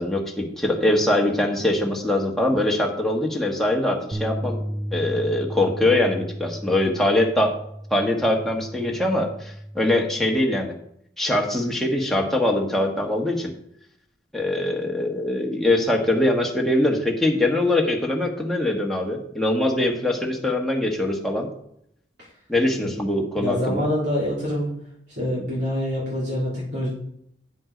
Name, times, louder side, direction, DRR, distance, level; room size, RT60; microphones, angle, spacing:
voice 1, 0.0-4.6 4.9-7.5 7.9-10.7 11.2-13.5 14.3-21.5 22.5-23.9, left 1 dB, ahead, -1 dB, 1.4 m, -22 dB
sound 1, 4.1-10.4, equal, 15° right, 0.6 m, -34 dB
voice 2, 23.4-24.7 25.1-26.9, left 1 dB, 65° right, -8 dB, 4.0 m, -25 dB
9.1 x 5.9 x 5.1 m, 0.72 s
head